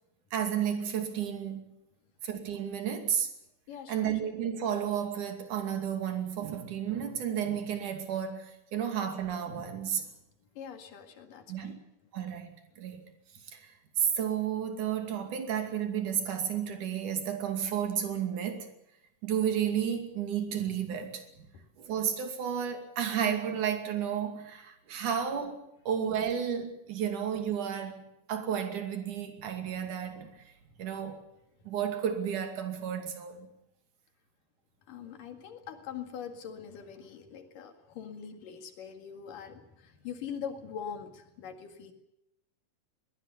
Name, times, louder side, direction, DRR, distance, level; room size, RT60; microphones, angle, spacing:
voice 1, 0.3-1.6 2.2-3.3 3.9-10.1 11.5-11.7 12.1-13.0 13.5-18.7 19.2-21.2 21.8-30.5 30.8-31.2 31.7-33.5, right 8 dB, 70° right, 4.0 m, -32 dB
voice 2, 3.7-4.1 10.6-11.8 34.9-41.9, left 7 dB, 85° left, 3.7 m, -43 dB
22.5 x 19.0 x 7.2 m
omnidirectional pair, 3.7 m